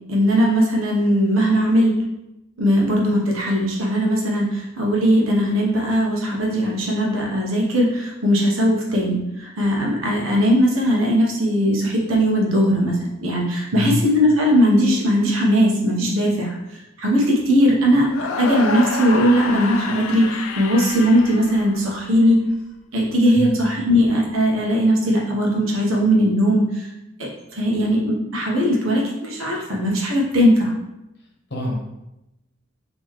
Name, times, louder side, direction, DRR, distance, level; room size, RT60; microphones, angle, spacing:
voice 1, 0.1-2.0 2.6-16.6 17.0-22.4 22.9-26.9 27.2-30.7, equal, 75° right, -1 dB, 1.0 m, -19 dB
voice 2, 13.7-14.0 23.4-23.5 31.5-31.7, left 2 dB, 55° left, -2 dB, 1.0 m, -24 dB
sound 1, 18.1-22.3, left 4 dB, 75° left, 0.4 m, -29 dB
3.8 x 2.9 x 3.1 m, 0.92 s
head